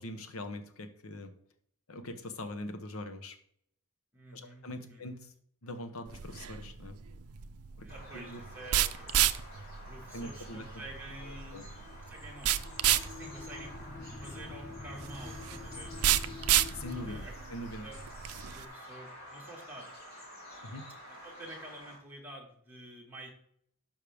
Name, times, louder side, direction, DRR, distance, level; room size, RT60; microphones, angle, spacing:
voice 1, 0.0-1.3 1.9-3.4 4.3-5.3 5.6-7.0 7.8-7.9 8.1-8.4 10.1-10.8 11.2-11.7 16.7-17.2 17.5-17.9 20.6-20.8, left 1 dB, 70° left, 8 dB, 1.0 m, -42 dB
voice 2, 4.1-5.0 7.8-9.4 9.9-11.6 12.1-12.6 12.9-16.4 17.1-17.4 17.8-18.0 18.4-19.9 21.1-23.3, right 1 dB, 10° right, -3 dB, 1.8 m, -49 dB
sound 1, 6.1-18.6, right 12 dB, 85° right, 0.5 m, -32 dB
Bird vocalization bird call bird song, 7.9-22.0, equal, 45° left, 4.0 m, -50 dB
sound 2, 11.9-17.2, left 3 dB, 20° left, 0.4 m, -47 dB
12.0 x 5.5 x 3.5 m, 0.67 s
head